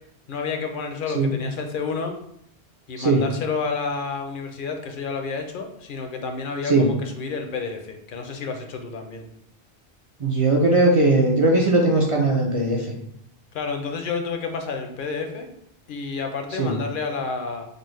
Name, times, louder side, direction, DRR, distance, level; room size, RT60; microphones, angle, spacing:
voice 1, 0.3-2.2 2.9-9.2 13.5-15.5 15.9-17.7, left 4 dB, 60° left, 5 dB, 0.6 m, -30 dB
voice 2, 10.2-12.9 16.6-16.8, right 2 dB, 45° right, -1 dB, 0.4 m, -19 dB
5.2 x 2.0 x 3.1 m, 0.74 s
omnidirectional pair, 1.1 m